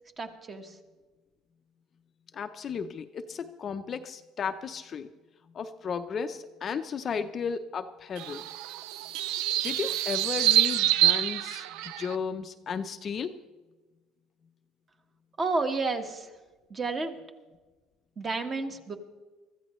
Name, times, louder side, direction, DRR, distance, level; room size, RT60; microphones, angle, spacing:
voice 1, 0.2-0.8 15.4-16.3 16.7-17.2 18.2-19.0, right 3 dB, 25° right, 6 dB, 1.4 m, -31 dB
voice 2, 2.3-5.1 5.5-8.5 9.6-13.4, left 6 dB, 35° left, 8 dB, 0.6 m, -34 dB
sound 1, 8.2-12.2, right 13 dB, 80° right, 0.4 m, -26 dB
23.5 x 14.0 x 3.1 m, 1.2 s
cardioid pair, 140°, 0 cm